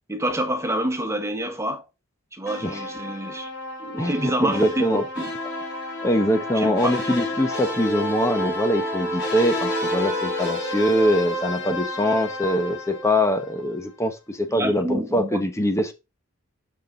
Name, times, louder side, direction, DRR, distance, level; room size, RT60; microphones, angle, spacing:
voice 1, 0.1-1.8 2.3-3.5 3.8-5.3 6.5-6.9 14.5-15.4, right 1 dB, 15° right, 1.5 m, -27 dB
sound 1, 2.5-13.7, left 1 dB, 55° left, 4.7 m, -30 dB
voice 2, 4.0-5.0 6.0-15.9, equal, 15° left, 0.9 m, -23 dB
6.8 x 6.5 x 3.9 m
head